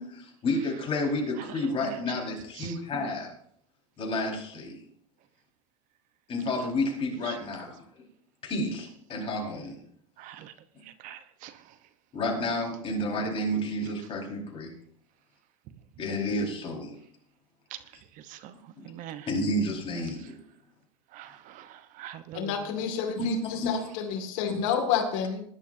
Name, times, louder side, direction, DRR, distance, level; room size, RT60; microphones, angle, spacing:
voice 1, 0.0-3.3 4.0-4.8 6.3-7.8 8.4-9.8 12.1-14.7 16.0-16.9 18.8-18.9 19.3-20.3 23.2-23.9, left 1 dB, 30° left, 4.8 m, -30 dB
voice 2, 10.2-10.5 11.0-11.5 18.3-18.5 18.8-19.3 21.1-21.7 22.0-22.5, right 11 dB, 50° right, 1.0 m, -43 dB
voice 3, 22.3-25.4, left 7 dB, 65° left, 2.2 m, -29 dB
20.0 x 11.0 x 2.7 m
supercardioid pair, 120°, 18 cm